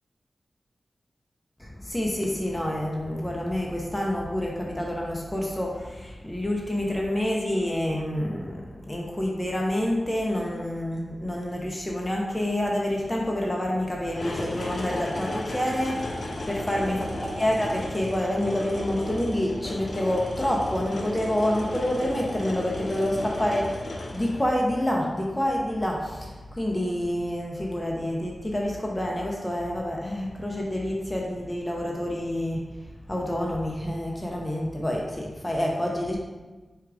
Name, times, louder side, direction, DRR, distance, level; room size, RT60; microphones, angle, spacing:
voice 1, 1.6-8.6 8.9-16.1 16.5-17.1 17.4-32.6 33.1-36.2, left 1 dB, 15° left, -2 dB, 0.7 m, -28 dB
sound 1, 14.0-24.8 25.9-26.0, left 1 dB, 70° left, 0.7 m, -34 dB
4.4 x 2.5 x 4.7 m, 1.2 s
cardioid pair, 45°, 0 cm